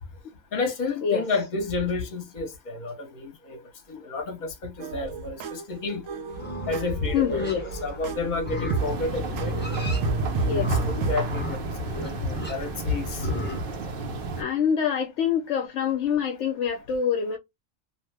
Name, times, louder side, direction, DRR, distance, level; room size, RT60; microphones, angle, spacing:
voice 1, 0.5-3.6 3.9-6.0 6.7-7.5 7.8-9.6 10.5-13.3, left 3 dB, 40° left, 0.9 m, -30 dB
sound 1, 4.8-11.2, right 4 dB, 75° right, 1.0 m, -31 dB
Livestock farm animals working animals, 6.3-13.6, left 1 dB, 10° left, 0.6 m, -36 dB
voice 2, 7.1-7.7 10.4-10.8 14.4-17.4, left 7 dB, 70° left, 0.9 m, -25 dB
sound 2, 8.8-14.4, right 2 dB, 55° right, 0.7 m, -31 dB
2.9 x 2.0 x 3.3 m
omnidirectional pair, 1.4 m